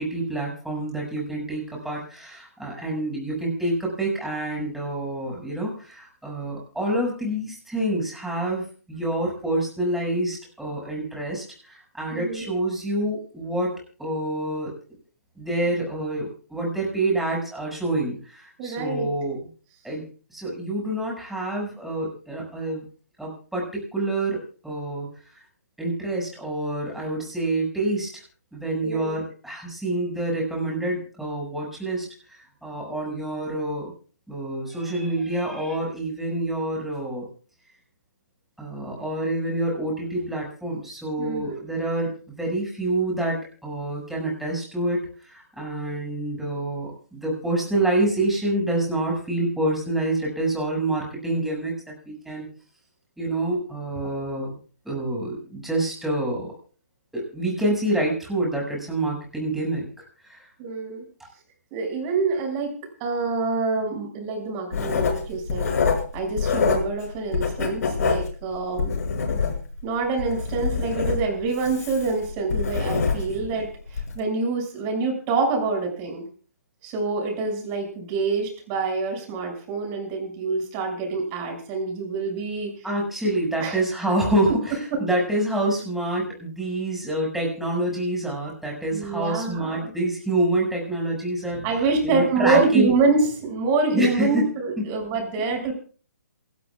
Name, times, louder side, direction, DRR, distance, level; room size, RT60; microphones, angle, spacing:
voice 1, 0.0-13.7 14.0-14.7 15.4-19.4 19.8-20.0 20.3-22.9 23.2-25.1 25.8-28.1 28.5-32.1 32.6-33.9 34.3-37.3 38.6-42.1 42.4-52.5 53.2-54.6 54.8-56.5 57.1-59.9 60.2-60.4 82.8-91.6 92.0-92.9 93.9-94.4, right 1 dB, ahead, -2 dB, 6.4 m, -27 dB
voice 2, 12.1-12.5 18.6-19.1 28.8-29.1 41.2-41.6 60.6-61.0 61.7-62.7 63.0-65.7 66.1-68.9 69.8-76.2 76.8-82.7 83.6-83.8 84.9-85.0 88.9-89.9 91.6-95.7, right 4 dB, 25° right, 3 dB, 6.7 m, -26 dB
Writing, 64.7-67.0 67.3-69.8 70.2-73.5 73.9-74.1, left 5 dB, 60° left, 6.8 m, -25 dB
27.5 x 13.0 x 2.5 m, 0.40 s
hypercardioid pair, 150°, 9 cm